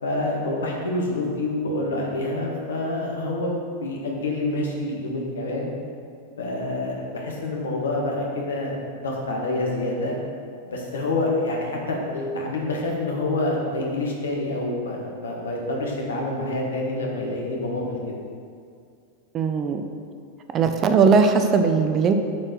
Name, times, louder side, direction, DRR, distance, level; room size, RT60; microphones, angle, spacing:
voice 1, 0.0-5.7 6.4-8.8 9.0-10.2 10.6-18.1, left 2 dB, 65° left, -1 dB, 1.5 m, -27 dB
voice 2, 19.3-19.8 20.5-22.1, right 5 dB, 30° right, 7 dB, 0.5 m, -19 dB
7.3 x 4.5 x 6.2 m, 2.3 s
figure-of-eight pair, 90°, 0 cm